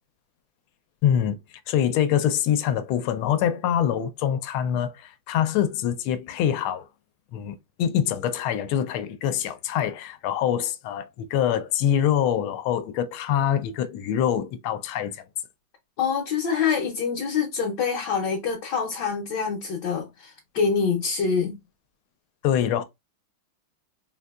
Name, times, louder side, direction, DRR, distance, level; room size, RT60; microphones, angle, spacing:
voice 1, 1.0-1.4 1.7-6.9 7.3-15.2 22.4-22.8, left 10 dB, 85° left, 1.4 m, -25 dB
voice 2, 16.0-21.5, left 6 dB, 65° left, 1.3 m, -25 dB
3.9 x 2.6 x 2.3 m
omnidirectional pair, 2.3 m